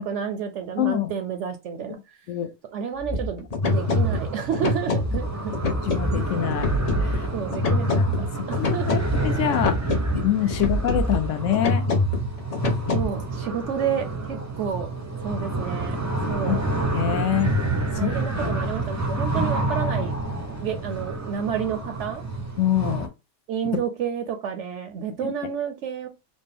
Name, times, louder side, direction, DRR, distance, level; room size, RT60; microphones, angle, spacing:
voice 1, 0.0-2.0 2.7-5.5 7.0-9.0 10.5-10.6 12.9-14.9 15.2-16.6 18.0-20.2 20.4-22.2 23.5-26.1, right 8 dB, 65° right, 0.8 m, -30 dB
voice 2, 0.8-1.1 2.3-2.5 3.8-3.9 5.8-6.7 7.1-7.3 8.0-8.1 8.6-9.8 10.2-11.9 16.5-16.6 16.9-17.5 18.0-18.1 18.4-18.6 22.6-23.1 25.2-25.3, left 11 dB, 70° left, 0.9 m, -25 dB
sound 1, 3.0-13.0, left 2 dB, 40° left, 0.6 m, -26 dB
sound 2, 3.6-23.1, right 2 dB, 20° right, 0.5 m, -29 dB
4.2 x 2.1 x 3.4 m
omnidirectional pair, 1.4 m